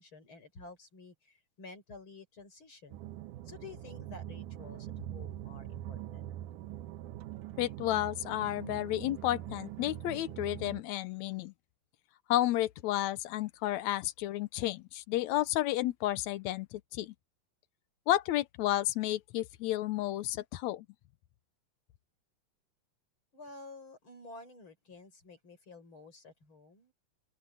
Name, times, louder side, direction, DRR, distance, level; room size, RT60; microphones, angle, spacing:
voice 1, 0.0-3.0 3.4-6.2 23.3-26.9, left 3 dB, 40° left, 6.1 m, -51 dB
sound 1, 2.9-10.8, right 13 dB, 85° right, 2.3 m, -43 dB
voice 2, 7.6-11.5 12.3-17.1 18.1-20.9, left 14 dB, 75° left, 1.9 m, -32 dB
open air
omnidirectional pair, 3.6 m